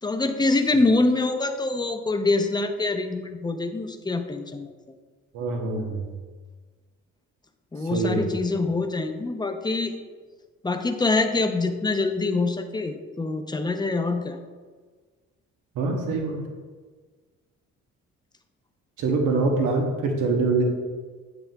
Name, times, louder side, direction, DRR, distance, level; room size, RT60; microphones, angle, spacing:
voice 1, 0.0-4.7 7.7-9.9 10.6-14.4, left 3 dB, 15° left, 6 dB, 0.6 m, -25 dB
voice 2, 5.3-6.1 7.9-8.3 15.8-16.4 19.0-20.6, right 3 dB, 90° right, 2 dB, 1.0 m, -24 dB
8.1 x 7.5 x 2.3 m, 1.4 s
cardioid pair, 90°, 30 cm